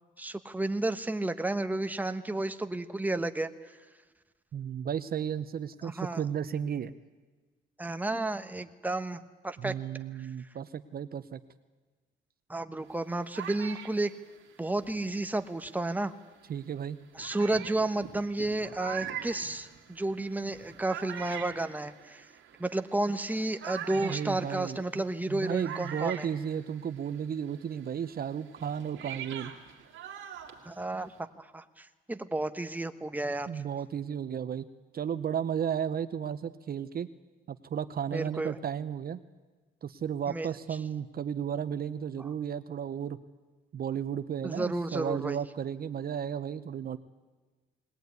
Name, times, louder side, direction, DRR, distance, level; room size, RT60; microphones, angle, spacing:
voice 1, 0.2-3.8 5.8-6.2 7.8-9.7 10.2-10.3 12.5-14.1 14.6-16.1 17.1-22.3 22.6-26.3 30.6-33.6 38.1-38.6 40.3-40.5 44.4-45.4, right 2 dB, 10° right, 9 dB, 1.1 m, -32 dB
voice 2, 4.5-6.9 9.6-11.4 16.5-17.0 23.9-29.5 33.5-34.7 34.9-37.1 37.5-39.2 39.8-43.2 43.7-47.0, right 8 dB, 50° right, 11 dB, 0.7 m, -34 dB
sound 1, 12.9-15.9 16.6-16.7 17.2-27.2 27.5-31.2, right 9 dB, 75° right, 2.1 m, -44 dB
20.5 x 18.0 x 9.4 m, 1.3 s
cardioid pair, 90°, 20 cm